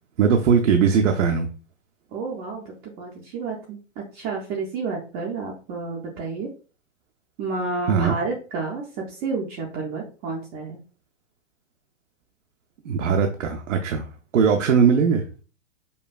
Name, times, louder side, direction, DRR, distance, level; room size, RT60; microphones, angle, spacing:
voice 1, 0.2-1.5 7.9-8.2 12.9-14.1 14.3-15.2, right 6 dB, 90° right, 4 dB, 0.5 m, -19 dB
voice 2, 2.1-3.8 4.1-6.5 7.4-10.8, right 4 dB, 20° right, -2 dB, 0.3 m, -30 dB
5.3 x 2.2 x 2.3 m, 0.36 s
hypercardioid pair, 120°, 36 cm